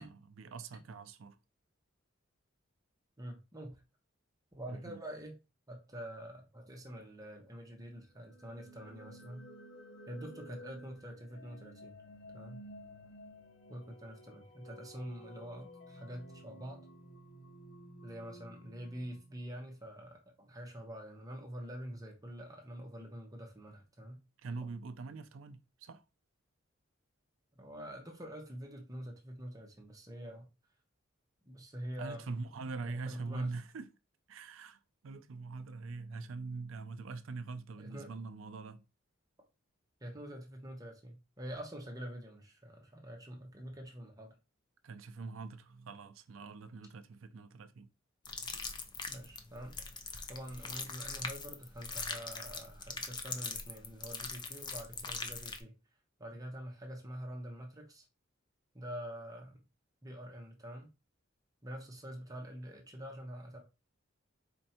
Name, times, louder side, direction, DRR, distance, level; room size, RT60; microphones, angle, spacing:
voice 1, 0.0-1.4 4.7-5.0 24.4-26.0 32.0-33.9 34.3-38.8 44.8-47.9, right 4 dB, 70° right, 0.5 m, -44 dB
voice 2, 3.2-3.8 4.5-5.4 5.7-9.5 10.1-12.0 12.3-12.6 13.7-16.9 18.0-24.2 27.6-30.5 31.5-33.5 37.8-38.1 40.0-44.3 49.1-50.0 50.3-55.8 56.2-58.1 58.7-59.6 60.0-60.9 61.6-63.6, equal, 15° right, 0.9 m, -46 dB
sound 1, 8.1-20.1, equal, 65° left, 1.0 m, -53 dB
sound 2, 48.2-55.6, left 4 dB, 20° left, 0.5 m, -42 dB
4.4 x 2.6 x 4.3 m
head